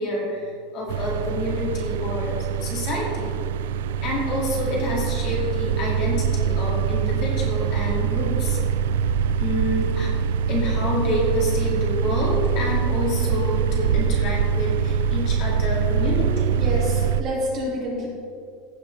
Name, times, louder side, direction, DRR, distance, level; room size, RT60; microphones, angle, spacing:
voice 1, 0.0-3.4 4.0-8.6 9.4-10.1 10.5-16.6, left 1 dB, 35° left, -3 dB, 2.3 m, -28 dB
sound 1, 0.9-17.2, right 7 dB, 90° right, 0.3 m, -24 dB
voice 2, 16.1-18.1, equal, 30° right, -5 dB, 2.5 m, -29 dB
15.5 x 6.6 x 3.3 m, 2.4 s
supercardioid pair, 175°, 0 cm